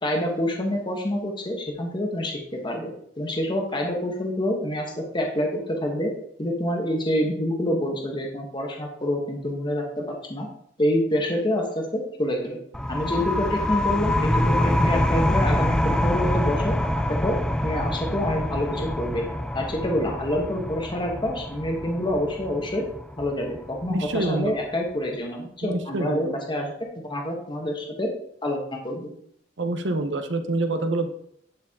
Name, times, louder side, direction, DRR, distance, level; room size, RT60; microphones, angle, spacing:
voice 1, 0.0-6.1 6.4-10.5 10.8-12.6 12.9-16.7 17.1-17.4 17.6-19.2 19.5-22.9 23.2-26.7 27.1-28.1 28.4-28.6 28.8-29.1, left 1 dB, 25° left, 1 dB, 1.3 m, -27 dB
sound 1, 12.7-24.1, left 1 dB, 5° left, 0.3 m, -25 dB
voice 2, 23.9-24.5 25.6-26.3 29.6-31.1, right 2 dB, 75° right, 8 dB, 0.8 m, -26 dB
11.5 x 4.7 x 3.7 m, 0.69 s
head